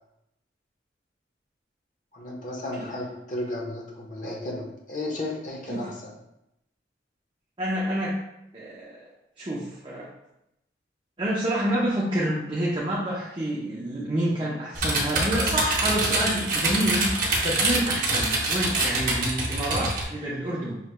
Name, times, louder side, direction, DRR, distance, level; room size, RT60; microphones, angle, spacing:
voice 1, 2.1-6.1, left 1 dB, 45° left, -3 dB, 1.0 m, -34 dB
voice 2, 7.6-8.1 8.5-9.0 9.4-10.1 11.2-17.1 17.4-20.8, right 1 dB, 25° right, -6 dB, 0.6 m, -28 dB
sound 1, 14.7-20.0, right 2 dB, 50° right, 0.9 m, -25 dB
5.6 x 3.1 x 2.2 m, 0.85 s
head